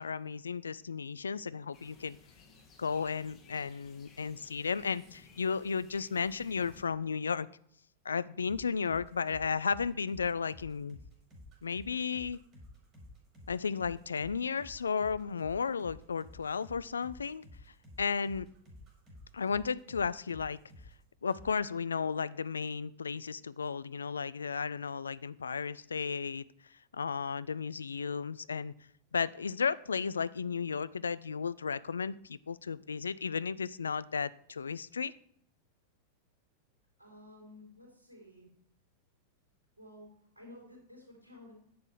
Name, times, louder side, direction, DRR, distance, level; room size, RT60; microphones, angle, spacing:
voice 1, 0.0-2.2 2.8-7.5 8.0-11.0 11.6-12.4 13.5-17.4 18.0-18.5 19.3-20.6 21.2-26.4 26.9-28.7 29.1-35.1, left 5 dB, 70° left, 18 dB, 0.4 m, -34 dB
sound 1, 1.7-6.8, left 5 dB, 30° left, 2.0 m, -58 dB
sound 2, 8.4-21.0 21.3-21.5, left 1 dB, 30° right, 4.6 m, -53 dB
voice 2, 37.0-38.5 39.8-40.1 40.4-41.5, left 1 dB, 85° right, -3 dB, 3.7 m, -53 dB
10.0 x 7.5 x 4.8 m, 0.67 s
figure-of-eight pair, 90°, 0 cm